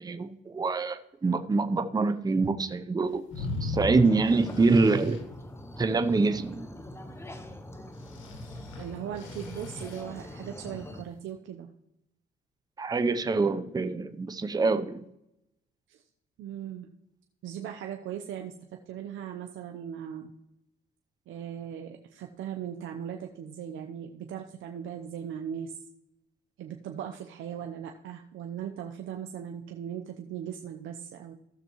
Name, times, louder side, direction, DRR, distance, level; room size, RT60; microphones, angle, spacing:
voice 1, 0.0-5.2 5.8-6.7 12.8-15.1, right 3 dB, 20° right, 10 dB, 0.6 m, -25 dB
sound 1, 3.3-5.2 8.0-10.0, left 3 dB, 80° left, 1.8 m, -37 dB
sound 2, 4.0-11.0, left 1 dB, 15° left, 1.0 m, -43 dB
voice 2, 8.8-11.7 15.9-16.0 16.4-16.9 17.4-18.5 18.9-20.3 21.3-25.7 26.6-31.3, right 9 dB, 75° right, 3 dB, 0.8 m, -38 dB
15.0 x 6.7 x 3.0 m, 0.85 s
cardioid pair, 90°, 20 cm